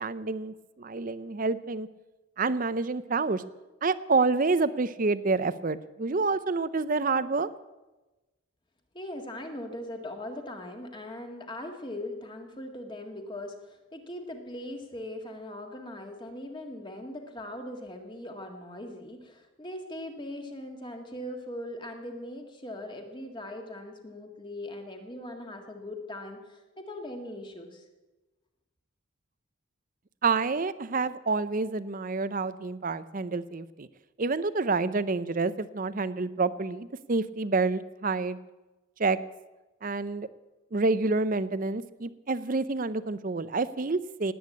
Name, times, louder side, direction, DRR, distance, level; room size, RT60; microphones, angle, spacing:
voice 1, 0.0-1.9 2.4-3.4 3.8-7.5 30.2-33.9 34.2-38.4 39.0-39.2 39.8-40.3 40.7-44.3, right 3 dB, 40° right, 15 dB, 0.6 m, -28 dB
voice 2, 8.9-27.9, left 1 dB, 20° left, 3 dB, 1.8 m, -40 dB
19.0 x 8.7 x 8.4 m, 1.1 s
head